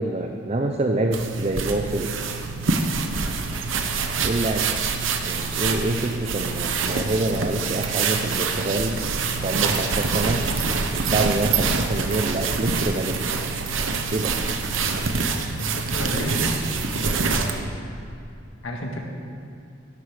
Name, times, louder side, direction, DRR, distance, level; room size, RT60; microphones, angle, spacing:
voice 1, 0.0-2.3 4.2-4.8 5.2-9.0 9.4-10.5 10.9-13.3 14.1-14.3, right 2 dB, 35° right, 3 dB, 0.6 m, -26 dB
sound 1, 1.1-17.6, right 4 dB, 75° right, 0.9 m, -25 dB
voice 2, 15.6-16.5 16.9-17.6 18.6-19.0, left 1 dB, 85° left, 1 dB, 1.8 m, -31 dB
11.0 x 9.9 x 6.7 m, 2.6 s
head